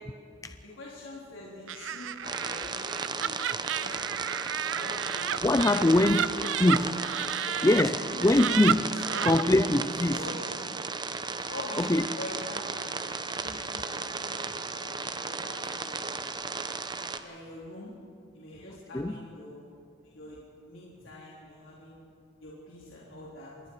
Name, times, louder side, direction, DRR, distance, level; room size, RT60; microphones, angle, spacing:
voice 1, 0.6-3.4 3.8-4.0 4.6-5.5 5.9-6.7 7.4-8.5 8.9-9.3 10.1-10.8 11.5-13.0 13.4-16.1 17.2-17.9 18.3-19.6 20.0-20.4 20.6-22.0 22.4-23.5, left 2 dB, 80° left, -6 dB, 3.9 m, -44 dB
Laughter, 1.7-7.8 8.2-9.4, right 9 dB, 70° right, 0.5 m, -32 dB
sound 1, 2.2-17.2, right 4 dB, 20° right, 0.9 m, -35 dB
voice 2, 5.4-6.3 6.6-6.9 7.6-8.9 9.2-10.2 11.8-12.1 18.9-19.1, left 1 dB, 15° left, 9 dB, 0.4 m, -23 dB
27.0 x 21.0 x 4.9 m, 2.4 s
head